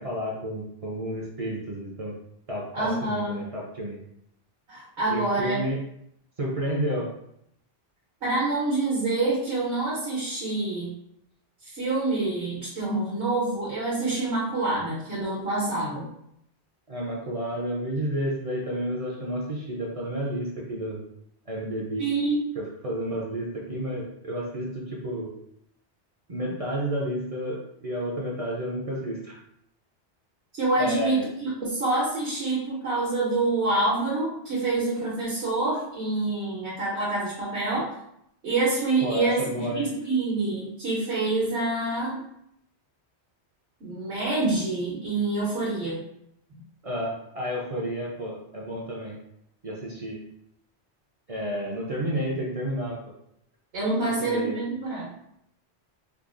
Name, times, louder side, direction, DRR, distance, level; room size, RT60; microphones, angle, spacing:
voice 1, 0.0-2.2 2.5-4.0 5.1-5.8 6.4-7.1 16.9-21.0 21.5-22.1 22.5-25.3 26.3-29.3 30.8-31.3 39.0-39.9 46.8-49.2 49.6-50.2 51.3-53.0 54.0-54.6, equal, 45° right, -3 dB, 0.5 m, -31 dB
voice 2, 2.7-3.3 4.7-5.6 8.2-10.9 11.7-16.0 22.0-22.4 30.5-37.9 38.4-42.2 43.8-46.0 53.7-55.1, right 2 dB, 70° right, -6 dB, 1.2 m, -26 dB
4.6 x 2.0 x 2.5 m, 0.75 s
omnidirectional pair, 1.1 m